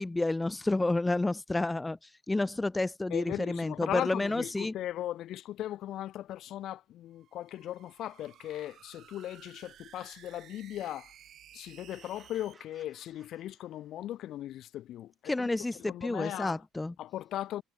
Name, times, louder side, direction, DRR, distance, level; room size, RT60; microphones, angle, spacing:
voice 1, 0.0-4.7 15.3-16.9, left 2 dB, 15° left, 0.4 m, -30 dB
voice 2, 3.1-11.1 11.5-15.5 15.7-16.6 17.0-17.6, left 13 dB, 60° left, 2.3 m, -38 dB
sound 1, 7.1-12.5, right 10 dB, 55° right, 6.8 m, -56 dB
sound 2, 11.9-14.2, right 4 dB, 30° right, 5.7 m, -62 dB
hypercardioid pair, 65°, 0 cm